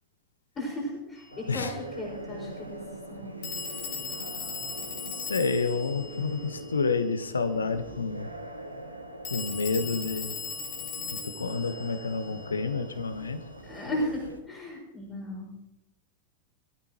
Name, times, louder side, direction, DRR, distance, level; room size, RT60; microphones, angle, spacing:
voice 1, 0.6-2.8 3.1-3.3 13.6-15.5, left 1 dB, 25° left, -8 dB, 5.1 m, -35 dB
Telephone, 1.2-1.3 3.4-7.1 9.2-12.9, left 6 dB, 45° left, 2.5 m, -39 dB
sound 1, 1.3-14.4, right 1 dB, 85° right, 1.8 m, -42 dB
voice 2, 5.1-8.3 9.3-10.3 11.2-13.4, left 4 dB, 75° left, 10 dB, 1.0 m, -29 dB
22.5 x 13.5 x 3.0 m, 0.90 s
figure-of-eight pair, 90°, 0 cm